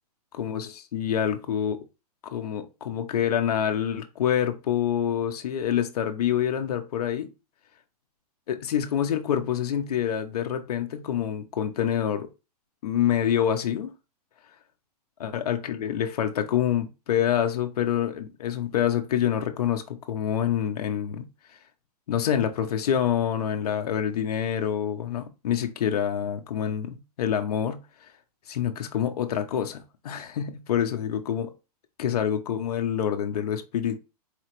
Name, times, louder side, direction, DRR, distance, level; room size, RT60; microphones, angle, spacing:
voice 1, 0.4-1.8 2.2-7.3 8.5-12.3 12.8-13.9 15.2-21.2 22.1-27.8 28.5-31.5 32.0-34.0, left 9 dB, 70° left, 0.7 m, -26 dB
4.2 x 3.0 x 2.9 m
hypercardioid pair, 170°, 20 cm